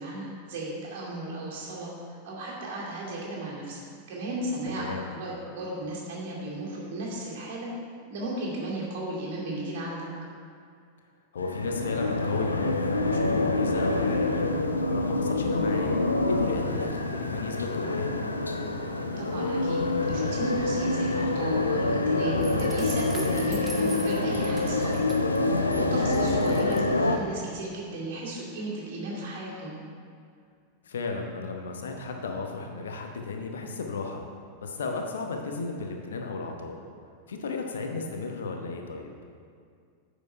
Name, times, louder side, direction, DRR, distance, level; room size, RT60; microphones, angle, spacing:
voice 1, 0.0-1.9 2.2-3.8 4.1-7.7 8.1-10.1 19.2-25.0 25.4-29.8, right 2 dB, 55° right, -4 dB, 2.4 m, -35 dB
voice 2, 4.7-5.1 11.3-18.1 26.3-26.5 30.8-36.7 37.3-39.1, left 4 dB, 65° left, 3 dB, 0.9 m, -34 dB
sound 1, 11.4-27.2, left 2 dB, 80° left, 0.5 m, -26 dB
sound 2, 22.4-25.8 26.1-26.8, right 1 dB, 5° right, 1.0 m, -43 dB
9.3 x 5.1 x 5.4 m, 2.2 s
figure-of-eight pair, 90°, 0 cm